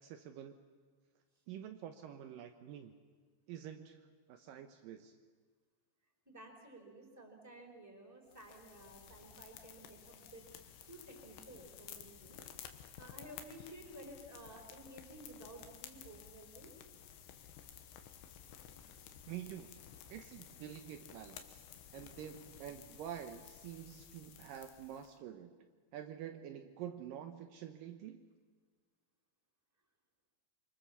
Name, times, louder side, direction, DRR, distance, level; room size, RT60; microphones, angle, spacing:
voice 1, 0.0-0.6 1.5-2.9 3.5-5.2 19.3-19.8 20.1-21.6 21.9-25.6 25.9-28.2, right 10 dB, 85° right, 6 dB, 1.9 m, -48 dB
voice 2, 6.3-10.5 10.9-12.4 13.0-16.7, right 1 dB, 5° right, 1 dB, 3.9 m, -54 dB
sound 1, 8.3-25.1, left 9 dB, 80° left, 3.5 m, -54 dB
26.5 x 24.5 x 7.3 m, 1.5 s
omnidirectional pair, 5.2 m